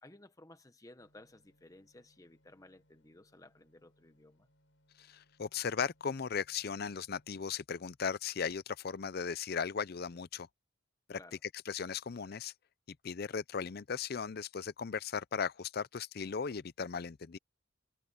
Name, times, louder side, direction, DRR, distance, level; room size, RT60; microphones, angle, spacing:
voice 1, 0.0-4.5 11.1-11.4, left 1 dB, 15° left, 0.9 m, -57 dB
sound 1, 1.0-7.6, equal, 70° left, 7.8 m, -72 dB
voice 2, 5.0-10.5 11.1-11.2 11.7-12.5 13.0-17.4, left 6 dB, 50° left, 0.5 m, -37 dB
head